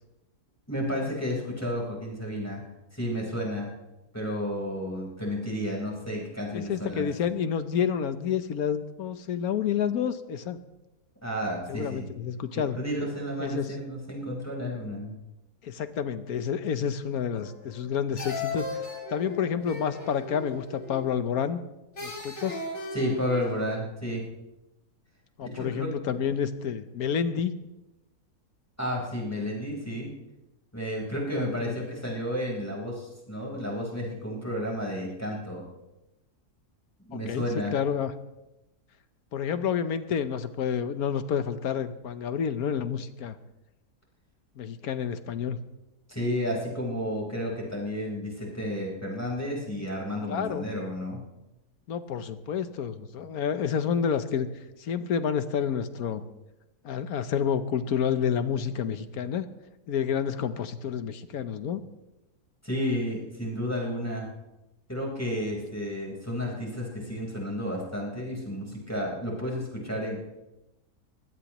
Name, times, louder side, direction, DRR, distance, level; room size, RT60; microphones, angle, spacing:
voice 1, 0.7-2.6 2.9-3.7 4.1-7.0 11.2-12.1 12.5-15.2 22.9-24.2 25.4-25.9 28.8-30.1 30.7-35.6 37.0-37.8 46.1-51.2 62.6-64.3 64.9-70.2, equal, 10° left, -2 dB, 4.1 m, -32 dB
voice 2, 6.5-10.6 11.7-12.8 13.4-13.7 15.6-18.8 19.1-21.6 22.0-22.6 25.4-27.5 31.3-31.8 37.1-37.4 37.7-38.1 39.3-43.4 44.6-45.6 50.3-50.7 51.9-54.5 54.8-56.2 56.8-59.5 59.9-61.8, left 7 dB, 70° left, 11 dB, 1.3 m, -29 dB
sound 1, 17.4-17.9 18.2-21.2 22.0-23.8, left 3 dB, 45° left, 4.1 m, -37 dB
22.0 x 16.5 x 3.0 m, 0.96 s
omnidirectional pair, 1.7 m